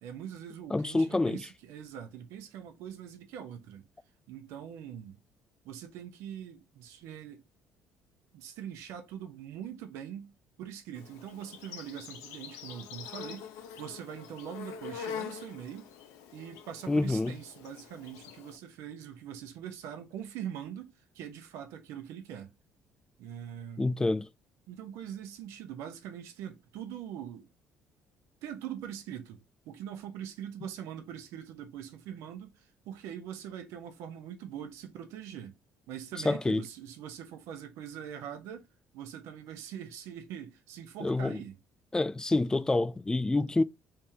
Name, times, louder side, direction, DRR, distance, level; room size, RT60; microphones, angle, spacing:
voice 1, 0.0-3.8 4.3-5.2 5.6-7.4 8.3-10.3 10.6-15.9 16.3-22.5 23.2-24.0 24.7-27.5 28.4-35.5 35.9-38.7 38.9-41.6, right 9 dB, 80° right, 0.9 m, -43 dB
voice 2, 0.7-1.4 16.9-17.3 23.8-24.3 36.2-36.6 41.0-41.4 41.9-43.6, left 2 dB, 15° left, 0.4 m, -27 dB
Insect, 10.9-18.6, left 8 dB, 85° left, 0.7 m, -44 dB
3.5 x 3.4 x 2.8 m
supercardioid pair, 70°, 5 cm